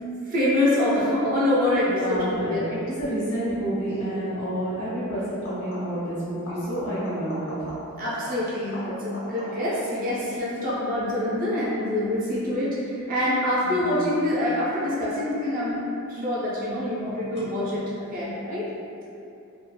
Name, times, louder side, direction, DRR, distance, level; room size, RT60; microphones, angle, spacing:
voice 1, 0.3-2.6 8.0-15.8 16.1-18.7, left 1 dB, 40° right, -8 dB, 0.5 m, -25 dB
voice 2, 1.8-7.5 13.6-14.0, right 1 dB, 80° left, -12 dB, 1.0 m, -29 dB
sound 1, 3.9-4.1 5.3-6.1 6.4-9.8 15.2-15.8 17.3-17.4, equal, 50° left, 0.8 m, -40 dB
2.8 x 2.3 x 2.2 m, 2.7 s
head